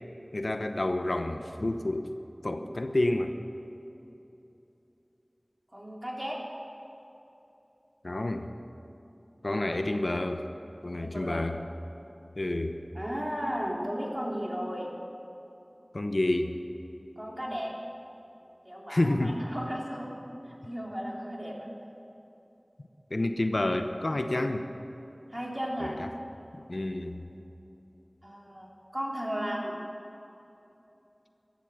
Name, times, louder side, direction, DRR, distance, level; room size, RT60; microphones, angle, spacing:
voice 1, 0.3-2.1 2.4-3.3 8.0-8.5 9.4-10.5 10.8-11.6 12.4-12.8 15.9-16.5 18.9-19.4 23.1-24.7 25.8-26.1 26.5-27.2, left 1 dB, 80° left, 7 dB, 0.8 m, -29 dB
voice 2, 5.7-6.4 9.5-9.7 10.9-11.4 12.9-15.0 17.2-17.7 18.6-20.1 20.6-21.7 25.3-26.0 28.2-29.8, equal, 20° right, -2 dB, 3.2 m, -35 dB
15.0 x 12.5 x 6.6 m, 2.9 s
wide cardioid pair, 40°, 0 cm